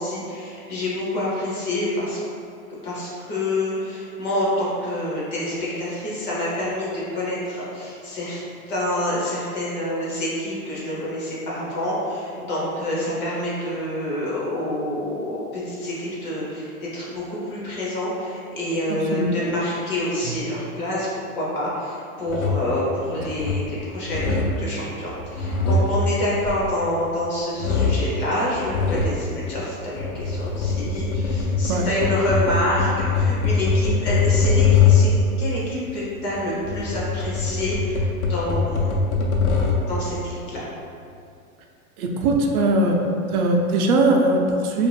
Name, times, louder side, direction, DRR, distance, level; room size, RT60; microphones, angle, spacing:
voice 1, 0.0-2.2 2.7-8.4 8.7-21.1 21.3-35.1 35.4-39.1 39.9-40.6, left 1 dB, 25° left, -7 dB, 0.6 m, -27 dB
voice 2, 18.9-19.3 31.7-31.9 42.0-43.0 43.3-44.9, right 2 dB, 75° right, 1 dB, 0.5 m, -20 dB
sound 1, 22.3-22.7 23.2-23.7 24.1-24.6 25.2-27.2 27.6-28.1 28.7-29.2 29.8-35.3 36.2-40.0, left 4 dB, 70° left, 0.6 m, -22 dB
2.5 x 2.2 x 3.1 m, 2.4 s
hypercardioid pair, 135°, 44 cm